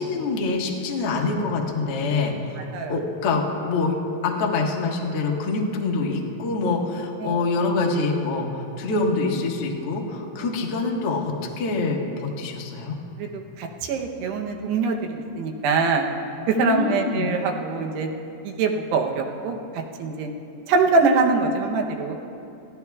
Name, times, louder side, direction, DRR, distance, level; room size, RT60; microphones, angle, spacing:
voice 1, 0.0-2.6 2.9-4.0 4.2-13.0 16.5-17.3, left 3 dB, 65° left, -1 dB, 1.4 m, -25 dB
voice 2, 13.2-16.0 16.5-18.1 18.4-20.3 20.7-22.1, right 4 dB, 80° right, 2 dB, 3.0 m, -24 dB
24.0 x 16.0 x 2.4 m, 2.7 s
omnidirectional pair, 4.8 m